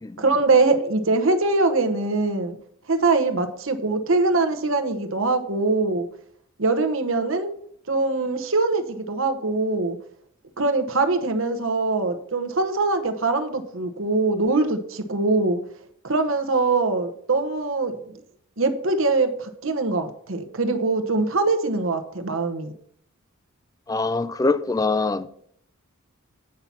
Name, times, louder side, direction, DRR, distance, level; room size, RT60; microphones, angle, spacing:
voice 1, 0.2-2.6 2.9-6.1 6.6-7.5 7.9-10.0 10.6-15.6 16.0-17.9 18.6-22.7, right 3 dB, 65° right, 1.0 m, -22 dB
voice 2, 23.9-25.3, left 3 dB, 15° left, 0.3 m, -23 dB
8.8 x 5.6 x 5.8 m
head